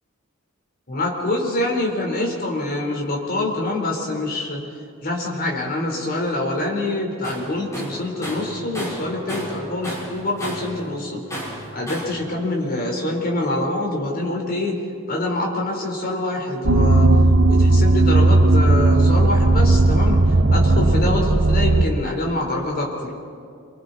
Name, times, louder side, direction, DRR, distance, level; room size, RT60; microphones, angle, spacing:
voice 1, 0.9-4.7 5.0-11.2 11.7-14.8 15.1-17.1 17.5-23.2, left 2 dB, 45° left, 0 dB, 4.0 m, -25 dB
Tools, 7.2-7.5 7.7-9.6 9.8-10.7 11.3-12.2, right 1 dB, 15° left, 5.9 m, -31 dB
sound 1, 16.6-21.9, right 2 dB, 55° right, 0.7 m, -15 dB
28.5 x 24.0 x 4.2 m, 2.4 s
head